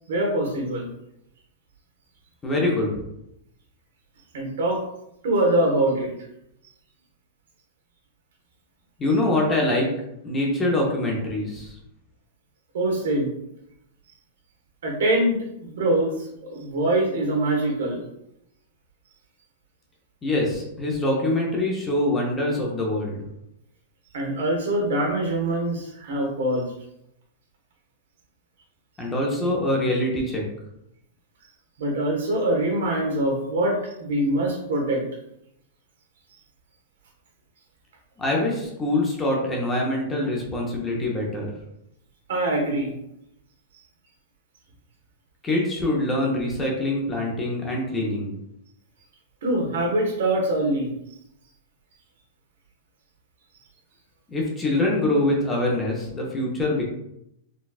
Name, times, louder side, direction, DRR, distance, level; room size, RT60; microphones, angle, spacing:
voice 1, 0.1-0.9 4.3-4.8 5.2-6.1 12.7-13.3 14.8-18.0 24.1-26.7 31.8-35.0 42.3-42.9 49.4-50.9, right 1 dB, 75° right, 0 dB, 1.1 m, -24 dB
voice 2, 2.4-2.9 9.0-9.9 10.2-11.7 20.2-23.2 29.0-30.4 38.2-41.5 45.4-48.3 54.3-56.8, left 1 dB, 15° left, -1 dB, 0.6 m, -24 dB
4.0 x 2.3 x 2.4 m, 0.82 s
supercardioid pair, 165°, 0 cm